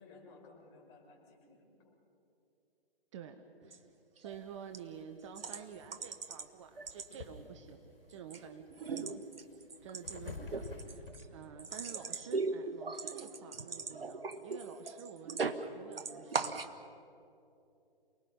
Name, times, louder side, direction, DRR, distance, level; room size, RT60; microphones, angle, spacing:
voice 1, 0.0-1.9 11.4-11.7, left 3 dB, 30° left, -1 dB, 5.9 m, -58 dB
voice 2, 3.1-3.8 4.1-8.6 8.9-9.3 9.8-11.0 11.3-15.5 15.7-16.7, right 7 dB, 30° right, 7 dB, 1.0 m, -49 dB
sound 1, 3.6-3.8 4.2-4.4 4.7-4.8 5.3-6.5 6.8-7.5 7.9-8.4 8.7-15.7 15.9-16.7, right 4 dB, 75° right, 1.3 m, -39 dB
sound 2, 4.3-11.2, left 4 dB, 75° left, 4.6 m, -50 dB
28.5 x 20.0 x 5.6 m, 2.8 s
figure-of-eight pair, 140°, 29 cm